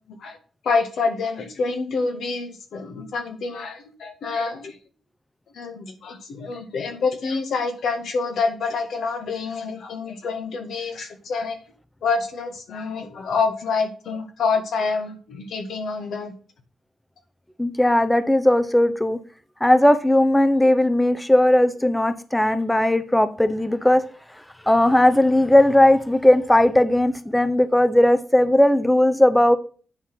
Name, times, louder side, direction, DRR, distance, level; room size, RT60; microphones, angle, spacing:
voice 1, 0.6-4.7 5.6-11.6 12.0-16.3, left 4 dB, 70° left, 1.8 m, -27 dB
voice 2, 17.6-19.2 19.6-24.1 24.7-29.6, left 1 dB, 10° left, 0.9 m, -17 dB
9.8 x 4.3 x 5.7 m
hypercardioid pair, 45°, 0 cm